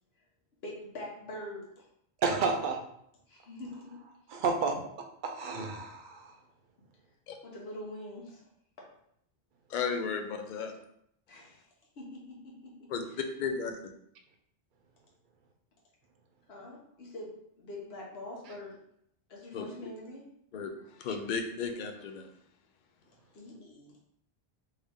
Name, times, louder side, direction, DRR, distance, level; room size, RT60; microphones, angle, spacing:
voice 1, 0.6-1.9 3.3-4.0 7.4-8.4 11.3-11.6 12.0-13.2 16.5-18.8 19.3-20.2 23.3-23.9, left 1 dB, 75° left, -2 dB, 1.2 m, -44 dB
voice 2, 2.2-2.8 4.3-4.7 5.2-6.3, right 4 dB, 55° right, 3 dB, 0.7 m, -30 dB
voice 3, 9.7-10.7 12.9-13.0 13.4-13.8 19.5-19.7 20.5-22.3, left 5 dB, 60° left, 5 dB, 0.6 m, -34 dB
3.4 x 2.8 x 3.5 m, 0.73 s
omnidirectional pair, 1.1 m